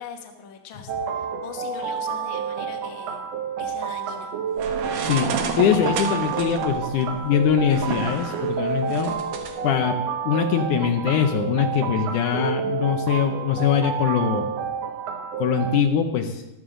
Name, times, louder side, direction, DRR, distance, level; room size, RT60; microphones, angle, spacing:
voice 1, 0.0-3.2 3.6-4.3, left 6 dB, 55° left, 4 dB, 1.4 m, -41 dB
sound 1, 0.9-15.8, right 6 dB, 90° right, 1.4 m, -29 dB
sound 2, 4.6-9.5, right 6 dB, 70° right, 2.4 m, -31 dB
voice 2, 5.0-9.2 9.6-14.5 15.4-16.4, left 8 dB, 75° left, 6 dB, 2.0 m, -22 dB
14.0 x 12.5 x 3.8 m, 0.97 s
omnidirectional pair, 4.0 m